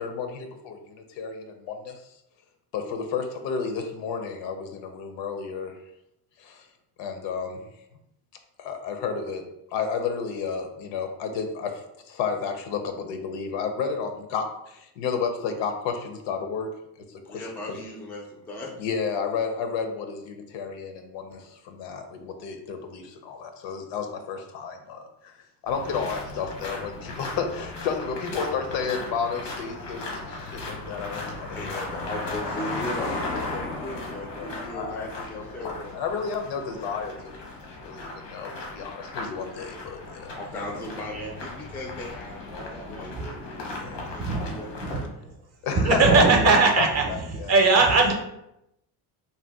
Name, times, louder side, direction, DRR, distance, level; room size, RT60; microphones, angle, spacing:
voice 1, 0.0-2.2 2.7-5.8 6.4-6.7 7.0-7.7 8.6-9.4 9.7-16.7 17.1-17.8 18.8-25.4 25.6-31.6 32.0-32.1 32.6-32.7 34.4-37.4 37.8-40.3 43.7-44.3 45.6-47.5, left 6 dB, 75° left, 6 dB, 0.6 m, -32 dB
voice 2, 17.2-18.9 31.5-35.9 39.9-43.4 44.1-45.3, left 1 dB, 5° left, 0 dB, 0.3 m, -38 dB
sound 1, 25.7-45.1, left 2 dB, 90° left, 1.0 m, -36 dB
voice 3, 44.2-44.5 44.8-45.0 45.8-47.0 47.5-48.1, right 3 dB, 35° right, 2 dB, 0.6 m, -19 dB
2.7 x 2.2 x 3.4 m, 0.83 s
cardioid pair, 115°, 44 cm